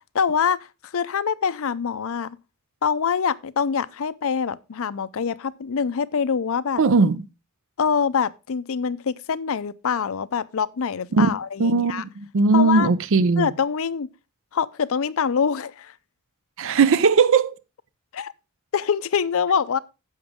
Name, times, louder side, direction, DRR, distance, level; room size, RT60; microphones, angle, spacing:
voice 1, 0.1-0.6 0.8-2.4 2.8-6.8 7.8-12.0 12.5-12.9 13.4-14.1 14.5-15.9 18.1-18.3 18.7-19.8, left 6 dB, 70° left, 0.5 m, -24 dB
voice 2, 6.8-7.2 11.1-11.3 11.6-13.5 16.6-17.6, right 4 dB, 65° right, 0.5 m, -18 dB
10.0 x 7.1 x 3.6 m
head